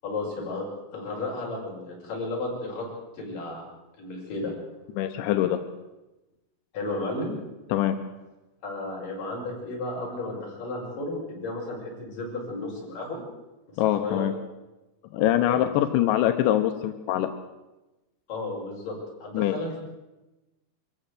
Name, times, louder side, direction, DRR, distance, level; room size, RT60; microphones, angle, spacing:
voice 1, 0.0-0.7 0.9-2.9 3.2-3.6 4.0-4.5 6.7-7.3 8.6-13.2 13.8-14.3 15.5-15.6 18.3-19.8, left 2 dB, 50° left, -2 dB, 7.3 m, -33 dB
voice 2, 5.0-5.6 7.7-8.0 13.8-14.3 15.1-17.3 19.3-19.5, left 12 dB, 90° left, 7 dB, 3.3 m, -23 dB
24.5 x 14.5 x 8.3 m, 1.0 s
omnidirectional pair, 5.1 m